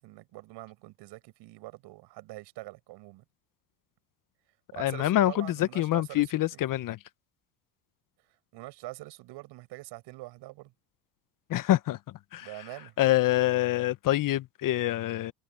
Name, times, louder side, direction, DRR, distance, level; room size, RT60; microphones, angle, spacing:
voice 1, 0.0-3.2 4.7-6.7 8.5-10.7 12.4-12.9, right 20 dB, 60° right, 6.9 m, -44 dB
voice 2, 4.8-7.0 11.5-12.0 12.3-12.5 13.0-15.3, left 14 dB, 45° left, 1.2 m, -26 dB
hypercardioid pair, 85°, 45 cm